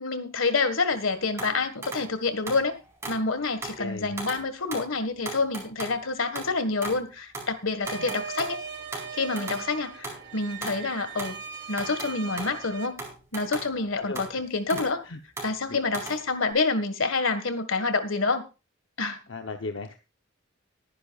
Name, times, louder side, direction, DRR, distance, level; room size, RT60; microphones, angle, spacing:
voice 1, 0.0-2.8 3.1-8.6 9.1-11.4 11.7-13.0 13.3-15.0 15.4-18.4 19.0-19.2, left 3 dB, 85° left, 10 dB, 1.7 m, -27 dB
sound 1, 0.9-1.1 1.4-2.1 2.5-3.3 3.6-3.8 4.2-4.5 4.7-4.9 5.3-7.1 7.3-7.5 7.9-9.7 10.0-11.4 11.7-12.6 13.0-13.9 14.2-15.0 15.4-16.5, right 2 dB, 15° right, 4.7 m, -38 dB
voice 2, 3.8-4.2 7.9-8.1 12.5-12.6 13.9-14.2 14.7-15.2 15.7-15.8 19.3-19.9, left 3 dB, 65° left, 5 dB, 0.9 m, -36 dB
sound 2, 7.8-12.9, right 6 dB, 55° right, 1.8 m, -39 dB
21.0 x 10.0 x 2.4 m, 0.29 s
head